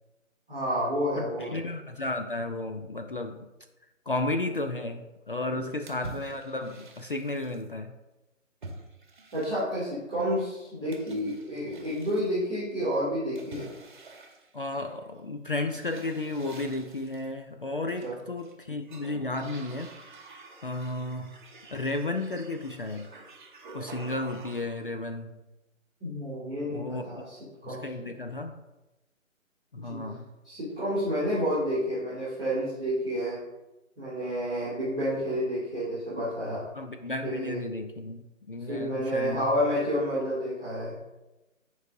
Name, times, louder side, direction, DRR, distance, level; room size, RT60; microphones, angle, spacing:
voice 1, 0.5-1.5 5.5-5.7 9.3-13.6 18.0-18.1 26.0-27.4 27.6-28.1 29.7-30.1 30.4-33.4 34.0-36.7 37.2-37.6 38.7-41.0, equal, 5° left, -16 dB, 0.6 m, -30 dB
voice 2, 1.2-3.5 4.1-8.0 14.5-19.9 20.6-21.4 21.7-23.1 23.7-25.3 26.7-27.3 27.6-28.5 29.7-30.3 36.7-39.5, left 2 dB, 45° left, 6 dB, 0.4 m, -33 dB
sound 1, 5.9-7.7 8.6-9.9 10.9-12.3 13.4-15.1 15.7-17.3 17.9-18.5 18.8-24.8, right 2 dB, 40° right, 1.0 m, -47 dB
9.2 x 4.7 x 2.6 m, 1.0 s
figure-of-eight pair, 150°, 40 cm